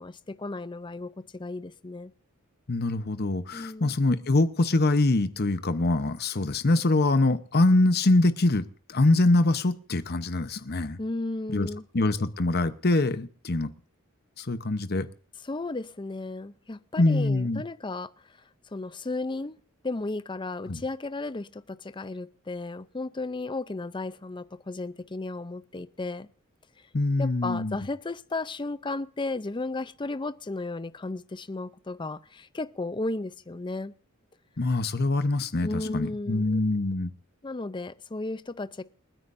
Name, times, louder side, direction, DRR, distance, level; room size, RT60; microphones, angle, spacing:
voice 1, 0.0-2.1 3.5-3.9 11.0-11.8 15.4-18.1 18.7-19.6 19.8-26.3 27.2-33.9 35.6-36.5 37.4-38.8, left 2 dB, 25° left, 0.5 m, -34 dB
voice 2, 2.7-11.0 11.5-11.7 11.9-13.7 14.4-15.1 17.0-17.6 20.7-20.8 26.9-27.8 34.6-37.1, left 2 dB, 50° left, 0.9 m, -24 dB
29.0 x 9.7 x 2.6 m
head